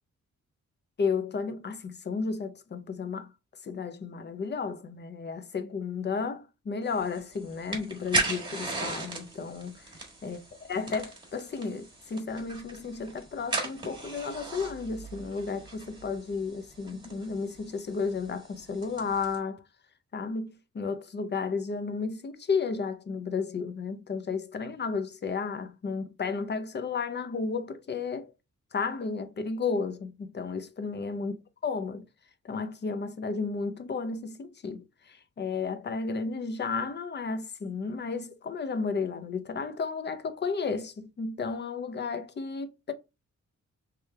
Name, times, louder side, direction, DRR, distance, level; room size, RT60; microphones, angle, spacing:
voice 1, 1.0-3.3 3.6-9.8 10.2-10.4 10.7-19.6 20.1-28.3 28.7-31.3 31.6-32.0 32.4-42.9, left 5 dB, 35° left, 0.5 m, -33 dB
sound 1, 6.9-19.4, right 3 dB, 15° right, 1.5 m, -37 dB
3.3 x 3.3 x 3.2 m
wide cardioid pair, 135°, 30 cm